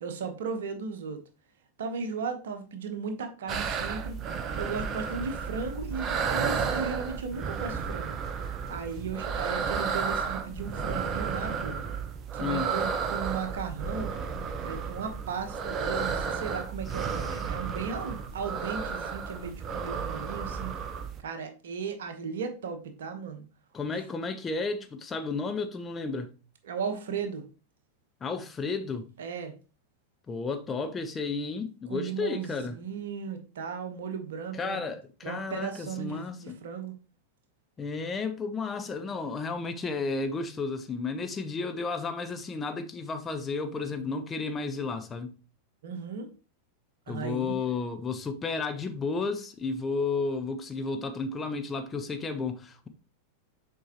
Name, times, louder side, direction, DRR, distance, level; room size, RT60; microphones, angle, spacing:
voice 1, 0.0-1.2 1.8-4.2 4.6-8.2 8.7-11.8 12.3-14.1 14.6-20.7 21.2-23.4 26.6-27.4 29.2-29.5 31.9-34.8 35.2-36.9 45.8-46.3 47.1-47.6, right 5 dB, 60° right, 1.1 m, -36 dB
sound 1, 3.5-21.2, right 6 dB, 30° right, 0.7 m, -32 dB
voice 2, 12.4-12.7 17.0-17.5 23.7-26.3 28.2-29.1 30.3-32.8 34.5-36.6 37.8-45.3 47.1-52.9, left 4 dB, 20° left, 0.7 m, -33 dB
7.1 x 4.6 x 2.9 m
figure-of-eight pair, 90°, 0 cm